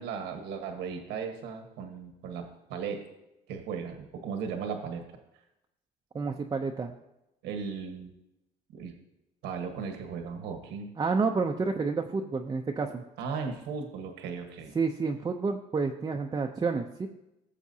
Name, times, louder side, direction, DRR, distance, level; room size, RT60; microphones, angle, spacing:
voice 1, 0.0-3.0 3.5-5.0 7.4-8.2 8.7-9.0 9.4-10.9 13.2-14.7, right 6 dB, 90° right, 4 dB, 1.4 m, -36 dB
voice 2, 6.1-6.9 11.0-13.0 14.7-17.1, right 4 dB, 25° right, 2 dB, 0.6 m, -29 dB
17.5 x 7.2 x 2.8 m, 0.91 s
cardioid pair, 110°, 17 cm